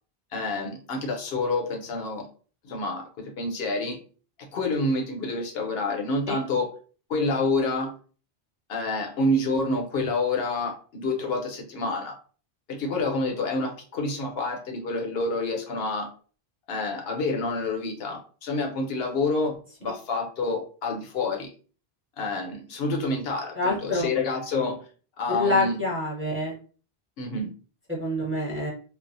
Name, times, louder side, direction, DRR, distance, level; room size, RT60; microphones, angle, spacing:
voice 1, 0.3-2.3 2.6-4.0 4.4-6.7 7.1-7.9 8.7-12.2 12.7-16.1 16.7-19.6 19.8-21.5 22.2-24.9 25.2-25.8 27.2-27.5, left 2 dB, 70° left, 1 dB, 0.9 m, -28 dB
voice 2, 23.6-24.0 25.3-26.5 27.9-28.7, left 2 dB, 15° right, -5 dB, 0.8 m, -26 dB
3.2 x 2.0 x 2.6 m, 0.40 s
omnidirectional pair, 1.1 m